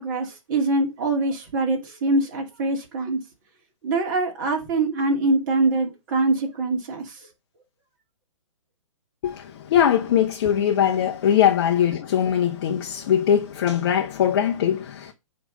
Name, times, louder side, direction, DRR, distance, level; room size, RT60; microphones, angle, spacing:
voice 1, 0.0-3.2 3.8-7.2, right 2 dB, 35° right, 2.4 m, -24 dB
voice 2, 9.2-15.1, left 9 dB, 40° left, 0.9 m, -21 dB
9.0 x 3.4 x 5.3 m
figure-of-eight pair, 120°, 17 cm